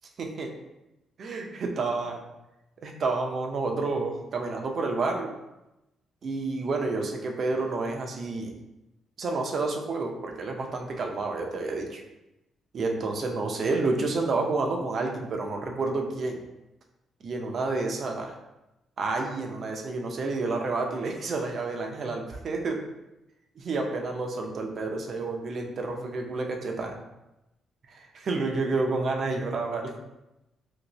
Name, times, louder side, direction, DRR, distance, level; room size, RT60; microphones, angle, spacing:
voice 1, 0.2-0.5 1.2-2.2 2.8-5.3 6.2-8.5 9.2-12.0 12.7-16.4 17.2-18.3 19.0-22.8 23.6-26.9 27.9-29.9, right 3 dB, 50° right, 2 dB, 0.5 m, -29 dB
2.9 x 2.6 x 3.0 m, 0.94 s
cardioid pair, 90°, 0 cm